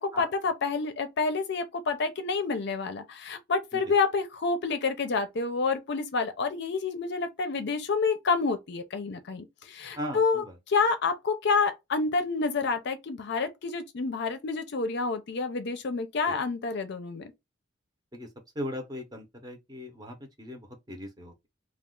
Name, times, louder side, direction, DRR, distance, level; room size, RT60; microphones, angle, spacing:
voice 1, 0.0-17.3, left 4 dB, 60° left, 0.5 m, -28 dB
voice 2, 10.0-10.5 16.3-16.4 18.1-18.3 18.5-21.5, equal, 20° right, 0.7 m, -38 dB
2.3 x 2.3 x 3.6 m
head